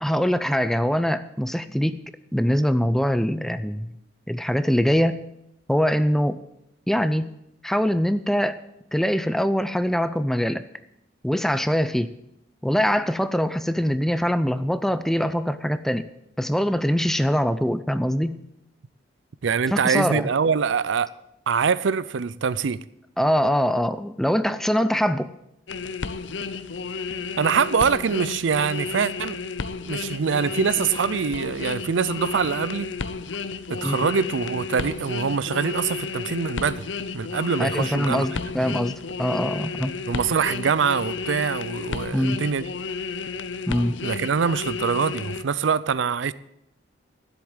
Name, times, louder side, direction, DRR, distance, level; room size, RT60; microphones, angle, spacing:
voice 1, 0.0-2.0 2.3-3.9 4.3-5.2 5.7-6.4 6.9-7.3 7.6-8.6 8.9-10.6 11.2-12.1 12.6-16.1 16.4-18.4 19.7-20.3 23.2-25.3 33.8-34.0 37.6-39.9 42.1-42.4 43.7-43.9, equal, ahead, 0.4 m, -23 dB
voice 2, 19.4-21.1 21.5-22.8 27.4-29.4 29.9-32.9 33.7-36.9 37.1-38.3 38.6-38.8 40.1-42.7 44.0-46.3, right 6 dB, 85° right, 0.5 m, -24 dB
sound 1, 25.7-45.4, left 5 dB, 80° left, 0.7 m, -32 dB
10.5 x 8.0 x 8.9 m
head